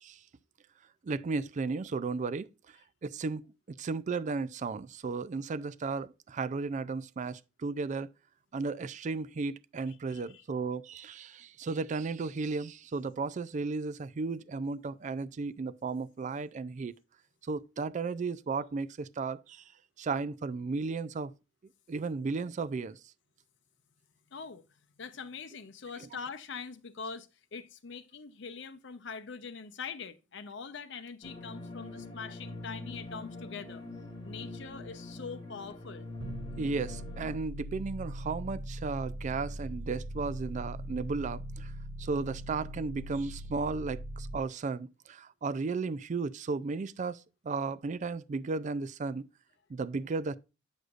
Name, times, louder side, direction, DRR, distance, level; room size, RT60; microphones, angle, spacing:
voice 1, 1.0-2.5 3.0-8.1 8.5-16.9 17.4-19.6 20.0-21.3 21.9-23.0 26.0-26.1 36.6-41.7 42.0-49.3 49.7-50.4, right 4 dB, 40° right, 0.3 m, -34 dB
voice 2, 9.9-10.2 24.3-24.6 25.0-33.8 34.2-36.1, left 5 dB, 65° left, 0.7 m, -43 dB
sound 1, 31.2-37.4, left 2 dB, 25° left, 2.4 m, -44 dB
sound 2, 36.2-44.4, right 1 dB, 85° right, 0.7 m, -40 dB
8.0 x 6.4 x 2.4 m
head